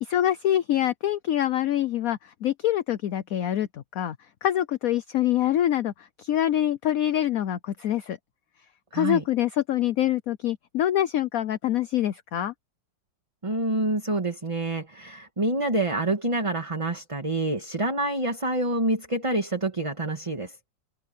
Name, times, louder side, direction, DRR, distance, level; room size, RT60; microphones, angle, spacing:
voice 1, 0.0-3.7 3.9-4.2 4.4-5.9 6.2-8.2 8.9-12.5, left 12 dB, 65° left, 1.0 m, -25 dB
voice 2, 8.9-9.2 13.4-20.6, right 2 dB, 20° right, 1.6 m, -27 dB
open air
omnidirectional pair, 2.0 m